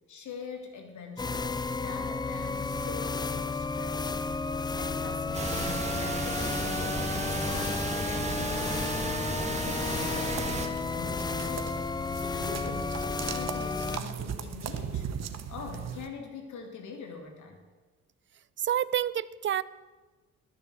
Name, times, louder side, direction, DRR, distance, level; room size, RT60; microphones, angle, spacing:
voice 1, 0.1-1.5 1.8-4.1 4.6-9.0 9.5-15.0 15.5-17.7, left 5 dB, 75° left, 4 dB, 2.6 m, -43 dB
sound 1, 1.2-14.0, left 4 dB, 15° left, 0.4 m, -32 dB
sound 2, 5.3-10.7, right 3 dB, 20° right, 1.8 m, -34 dB
sound 3, 9.9-16.1, right 8 dB, 60° right, 1.1 m, -39 dB
voice 2, 18.6-19.6, right 10 dB, 40° right, 18 dB, 0.5 m, -28 dB
12.0 x 7.1 x 7.7 m, 1.3 s
cardioid pair, 90°, 30 cm